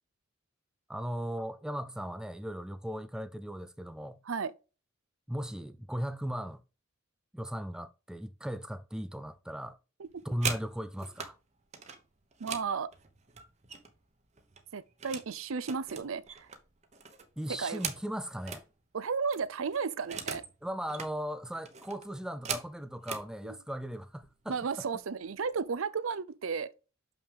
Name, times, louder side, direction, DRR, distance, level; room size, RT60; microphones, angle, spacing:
voice 1, 0.9-4.2 5.3-6.6 7.3-9.8 10.2-11.4 17.4-18.7 20.6-24.6, equal, 5° right, 0.3 m, -37 dB
sound 1, 10.1-11.3 11.7-14.1 14.4-15.3 15.6-18.7 19.0-19.1 19.3-20.5 20.8-21.1 21.7-23.3 24.1-24.3 24.6-24.9 25.2-25.8, right 6 dB, 35° right, 0.9 m, -40 dB
voice 2, 12.4-12.9 14.7-16.5 17.5-17.8 18.9-20.4 24.5-26.7, right 5 dB, 75° right, 0.5 m, -33 dB
6.4 x 5.7 x 3.4 m
head